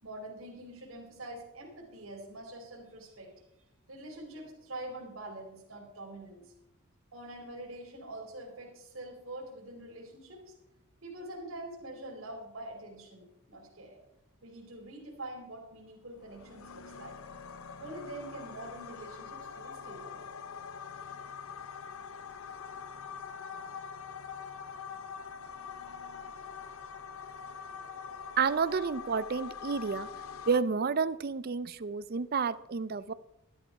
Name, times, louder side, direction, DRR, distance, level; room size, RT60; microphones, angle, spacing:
voice 1, 0.0-3.3 3.9-6.5 7.1-10.5 11.0-14.0 14.4-17.2 17.8-20.2, right 1 dB, 70° right, -1 dB, 3.1 m, -45 dB
sound 1, 16.2-30.6, left 6 dB, 75° left, 0.7 m, -44 dB
voice 2, 28.4-30.1 30.5-33.1, right 5 dB, 45° right, 17 dB, 0.5 m, -30 dB
13.0 x 11.5 x 4.7 m, 0.85 s
head